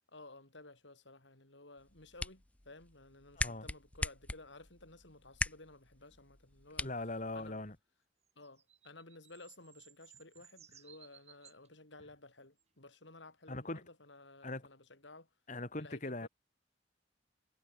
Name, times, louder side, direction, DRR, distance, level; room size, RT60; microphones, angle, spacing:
voice 1, 0.1-6.9 7.3-7.6 8.4-15.3 15.7-16.3, left 2 dB, 80° left, 5.4 m, -55 dB
sound 1, 1.8-7.8, left 2 dB, 5° left, 0.4 m, -42 dB
voice 2, 3.4-3.7 6.8-7.8 13.5-13.8 14.4-14.7 15.5-16.3, left 2 dB, 45° left, 2.6 m, -40 dB
sound 2, 8.3-11.7 12.6-12.7, right 9 dB, 35° right, 6.6 m, -60 dB
head